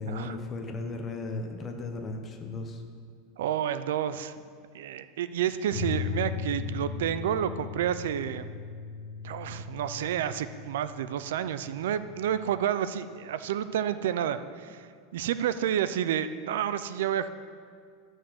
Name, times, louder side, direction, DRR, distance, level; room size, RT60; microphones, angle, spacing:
voice 1, 0.0-2.8, left 3 dB, 20° left, 4 dB, 0.9 m, -36 dB
voice 2, 3.4-4.3 4.7-8.5 9.2-17.3, right 10 dB, 90° right, 13 dB, 0.5 m, -30 dB
sound 1, 5.7-12.6, left 6 dB, 75° left, 1.2 m, -38 dB
11.5 x 6.3 x 7.7 m, 2.1 s
supercardioid pair, 175°, 0 cm